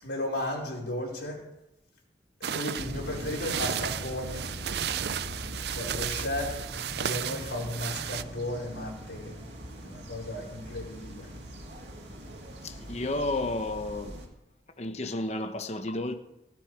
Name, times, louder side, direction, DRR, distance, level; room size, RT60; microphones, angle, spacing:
voice 1, 0.0-1.4 2.5-4.4 5.7-6.7 7.0-9.3 9.8-11.3, left 1 dB, 85° left, 5.0 m, -34 dB
sound 1, 2.4-8.2, right 9 dB, 65° right, 0.5 m, -34 dB
sound 2, 2.8-14.3, equal, 85° right, 2.2 m, -41 dB
voice 2, 12.6-14.2 14.8-16.2, left 2 dB, 40° left, 1.0 m, -32 dB
16.5 x 10.5 x 5.0 m
head